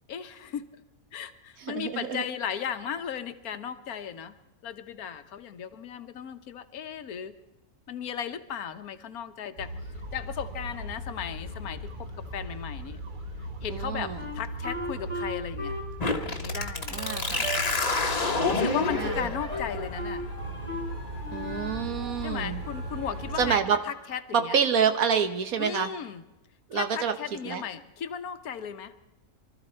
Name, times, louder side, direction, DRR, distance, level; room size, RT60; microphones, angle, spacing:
voice 1, 0.1-0.7 1.1-4.3 4.6-7.4 7.9-9.7 10.1-13.0 13.6-15.8 16.4-17.0 18.5-20.2 22.2-23.6 23.8-24.6 25.6-26.2 26.7-28.9, left 8 dB, 85° left, 10 dB, 1.4 m, -36 dB
voice 2, 1.6-2.2 13.7-14.2 16.9-17.5 18.8-19.3 21.3-22.6 23.4-23.8 24.3-25.9 26.7-27.1 27.4-27.6, right 7 dB, 75° right, 8 dB, 1.6 m, -27 dB
sound 1, 9.6-23.6, right 1 dB, 35° right, 1.3 m, -38 dB
Wind instrument woodwind instrument, 14.2-17.6 18.0-18.3 18.6-19.2 19.5-20.3 20.7-20.9 21.2-21.9, equal, 10° right, 2.8 m, -37 dB
sound 2, 16.0-23.5, left 3 dB, 30° left, 1.2 m, -31 dB
23.5 x 13.5 x 4.4 m, 0.97 s
omnidirectional pair, 1.5 m